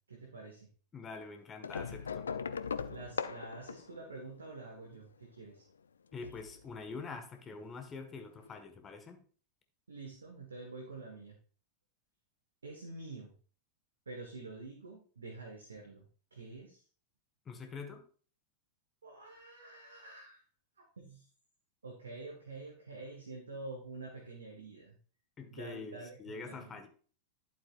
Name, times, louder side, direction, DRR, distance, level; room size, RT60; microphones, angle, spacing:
voice 1, 0.1-0.7 2.9-5.6 9.9-11.4 12.6-13.3 14.1-16.0 16.3-16.8 19.0-20.4 21.0-21.2 21.8-25.0 25.5-26.8, right 3 dB, 75° right, 1 dB, 1.4 m, -47 dB
voice 2, 0.9-2.2 6.1-9.2 17.4-18.0 25.4-26.9, left 4 dB, 20° left, 6 dB, 1.4 m, -45 dB
sound 1, 1.6-4.9 6.1-6.9 8.1-8.2 8.4-8.5, left 6 dB, 70° left, 0.5 m, -39 dB
11.0 x 7.6 x 2.4 m, 0.42 s
figure-of-eight pair, 90°, 0 cm